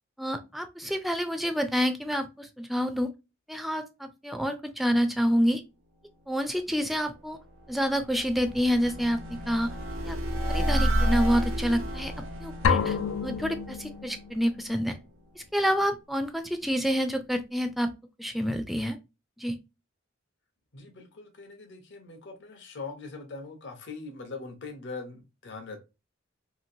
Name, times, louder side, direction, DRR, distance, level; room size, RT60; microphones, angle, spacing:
voice 1, 0.2-3.1 3.5-5.6 6.3-7.4 7.7-9.7 10.0-10.2 10.5-13.0 13.2-15.0 15.4-17.9 18.2-19.0 19.4-19.6, equal, ahead, 0.3 m, -28 dB
sound 1, 7.4-14.5, equal, 90° right, 0.7 m, -31 dB
sound 2, 12.6-14.5, left 6 dB, 85° left, 0.4 m, -28 dB
voice 2, 20.7-25.8, left 4 dB, 65° left, 0.8 m, -41 dB
2.9 x 2.6 x 2.7 m
head